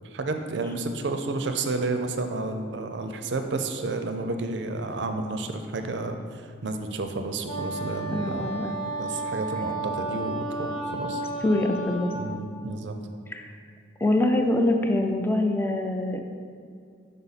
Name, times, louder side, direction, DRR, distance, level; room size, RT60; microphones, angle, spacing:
voice 1, 0.1-8.5 8.9-11.2 12.1-12.9, right 3 dB, 70° right, 6 dB, 0.5 m, -31 dB
Wind instrument woodwind instrument, 7.5-12.3, right 2 dB, 30° left, 0.8 m, -33 dB
voice 2, 8.1-8.8 11.4-12.1 13.3-13.5 14.0-16.2, left 1 dB, 10° left, 4 dB, 0.3 m, -24 dB
5.5 x 5.2 x 4.1 m, 2.3 s
head